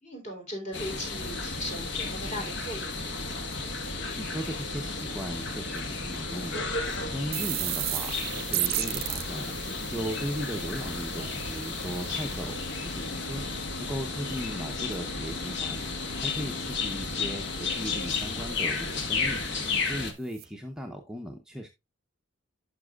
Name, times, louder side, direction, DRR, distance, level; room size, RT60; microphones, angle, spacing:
voice 1, 0.0-3.2 19.6-19.8, equal, 35° left, 3.2 m, -38 dB
sound 1, 0.7-20.1, left 3 dB, 55° left, 1.3 m, -33 dB
voice 2, 4.2-6.7 7.1-9.5 9.9-15.8 16.2-21.7, equal, 5° right, 0.7 m, -37 dB
sound 2, 6.9-7.0 7.3-12.9 19.8-19.9 20.3-20.5, right 17 dB, 45° right, 0.4 m, -35 dB
sound 3, 12.6-18.6, left 3 dB, 80° left, 1.6 m, -45 dB
11.5 x 5.8 x 2.3 m
head